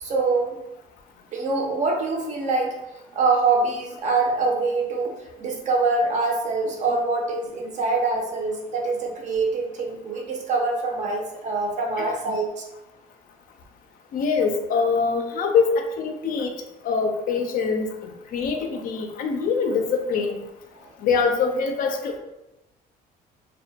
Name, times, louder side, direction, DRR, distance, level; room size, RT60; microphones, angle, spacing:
voice 1, 0.0-0.6 1.3-2.7 3.1-12.5, right 3 dB, 45° right, 1 dB, 0.5 m, -24 dB
voice 2, 14.1-16.5 16.8-20.4 21.0-22.2, left 5 dB, 55° left, 4 dB, 0.4 m, -24 dB
2.2 x 2.1 x 2.7 m, 0.94 s
cardioid pair, 110°, 17 cm